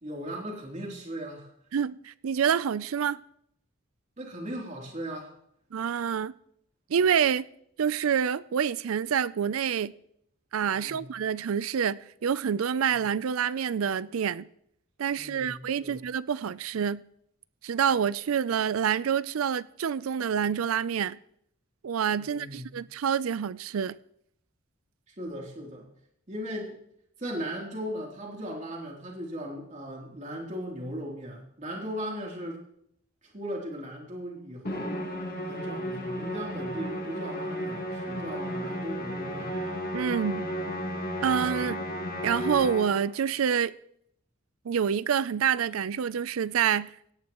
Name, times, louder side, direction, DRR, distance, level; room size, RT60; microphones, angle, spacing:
voice 1, 0.0-1.5 4.2-5.3 10.7-11.0 12.9-13.0 15.1-16.0 22.2-22.8 25.1-25.9 26.3-26.8 27.2-32.6 33.2-34.9 35.5-39.5, equal, 35° right, 3.2 m, -38 dB
voice 2, 1.7-3.2 5.7-6.3 6.9-7.5 7.8-9.9 10.5-14.5 15.0-17.0 17.6-21.2 21.8-23.9 39.9-40.5 41.2-41.8 42.2-43.7 44.7-46.9, right 7 dB, 85° right, 0.4 m, -27 dB
Musical instrument, 34.6-43.2, equal, 45° left, 2.1 m, -33 dB
18.0 x 17.0 x 3.0 m
head